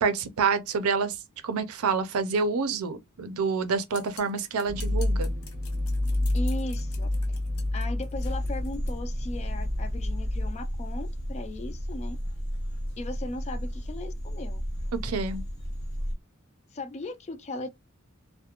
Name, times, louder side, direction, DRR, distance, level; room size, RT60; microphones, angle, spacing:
voice 1, 0.0-1.2 1.4-5.3 14.9-15.4, right 5 dB, 90° right, 0.5 m, -27 dB
sound 1, 3.9-9.0, left 7 dB, 90° left, 0.7 m, -49 dB
sound 2, 4.7-10.5, left 1 dB, 35° right, 0.5 m, -29 dB
voice 2, 6.3-7.1 7.7-12.2 13.0-14.6 16.7-17.7, left 2 dB, 30° left, 0.3 m, -37 dB
sound 3, 8.1-16.1, equal, 55° left, 0.7 m, -34 dB
2.4 x 2.1 x 2.8 m
head